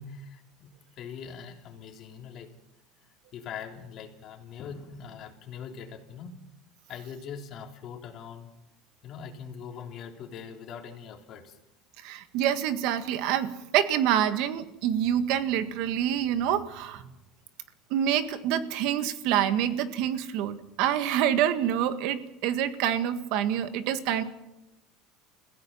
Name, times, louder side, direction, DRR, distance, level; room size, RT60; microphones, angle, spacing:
voice 1, 0.0-2.5 3.3-6.3 6.9-8.5 9.0-11.6, left 7 dB, 45° left, 2 dB, 3.5 m, -42 dB
voice 2, 12.0-17.0 17.9-24.2, right 10 dB, 65° right, 10 dB, 1.7 m, -27 dB
30.0 x 16.0 x 5.7 m, 0.90 s
cardioid pair, 145°, 0 cm